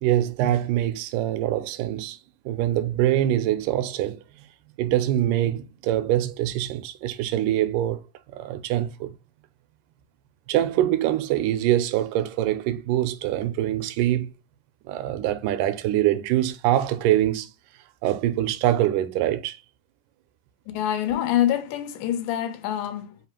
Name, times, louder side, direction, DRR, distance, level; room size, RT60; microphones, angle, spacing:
voice 1, 0.0-2.2 2.5-4.2 4.8-8.0 8.3-9.1 10.5-14.3 14.9-17.5 18.0-19.6, right 12 dB, 85° right, 2.1 m, -24 dB
voice 2, 20.7-23.2, left 11 dB, 85° left, 2.2 m, -26 dB
5.0 x 2.4 x 2.9 m
omnidirectional pair, 3.7 m